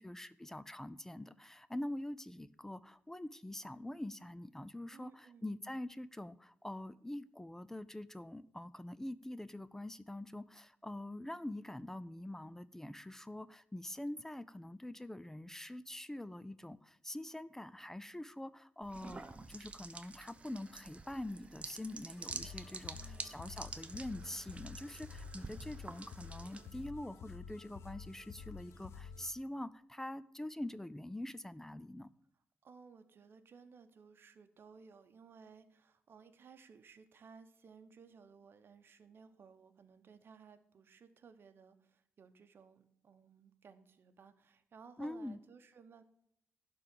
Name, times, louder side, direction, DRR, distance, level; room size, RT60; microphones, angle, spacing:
voice 1, 0.0-32.1 45.0-45.4, left 1 dB, 10° left, 16 dB, 0.4 m, -45 dB
voice 2, 4.9-5.5 22.9-23.4 32.6-46.0, right 5 dB, 55° right, 9 dB, 1.0 m, -59 dB
sound 1, 18.8-26.9, right 3 dB, 30° right, 0.7 m, -48 dB
sound 2, 22.2-29.3, left 6 dB, 80° left, 0.6 m, -50 dB
11.5 x 3.8 x 7.5 m, 0.72 s
cardioid pair, 95°, 4 cm